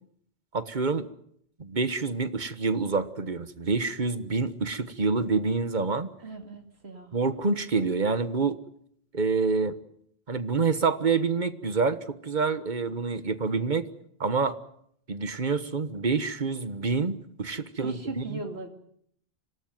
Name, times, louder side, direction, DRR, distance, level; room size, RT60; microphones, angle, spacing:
voice 1, 0.5-1.1 1.6-6.1 7.1-8.6 9.1-9.8 10.3-13.9 14.2-14.6 15.1-18.4, right 4 dB, 50° right, 12 dB, 1.5 m, -27 dB
voice 2, 6.2-7.2 17.8-18.7, right 3 dB, 90° right, 4 dB, 2.9 m, -38 dB
26.0 x 18.5 x 9.3 m, 0.70 s
omnidirectional pair, 1.0 m